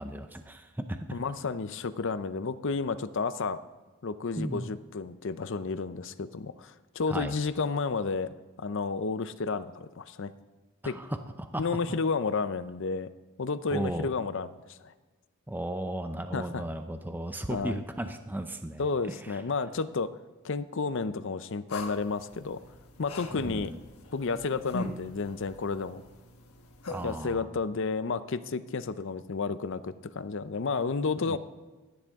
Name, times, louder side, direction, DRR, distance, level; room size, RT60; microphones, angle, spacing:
voice 1, 0.0-1.2 4.4-4.7 7.1-7.4 10.8-11.7 13.7-14.1 15.5-19.4 23.3-23.8 26.9-27.5 31.2-31.4, right 1 dB, 10° right, 7 dB, 0.6 m, -35 dB
voice 2, 1.1-3.6 4.0-10.3 10.8-11.0 11.6-13.1 13.4-14.9 16.3-16.6 17.5-17.8 18.8-20.1 20.4-22.6 23.0-23.7 24.1-26.0 27.0-31.4, left 4 dB, 55° left, 13 dB, 0.6 m, -31 dB
sound 1, 21.7-27.2, left 2 dB, 75° left, 1.3 m, -42 dB
15.5 x 10.0 x 3.6 m, 1.3 s
head